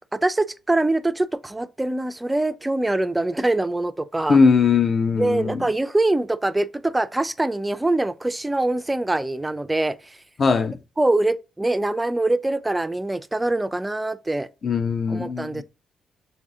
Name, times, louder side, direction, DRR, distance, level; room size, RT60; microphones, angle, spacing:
voice 1, 0.1-4.4 5.2-10.0 11.0-14.5 15.1-15.6, right 2 dB, 15° right, 0.3 m, -23 dB
voice 2, 4.3-5.6 10.4-10.8 14.6-15.6, left 5 dB, 50° left, 0.5 m, -19 dB
3.2 x 2.7 x 3.6 m
cardioid pair, 75°, 0 cm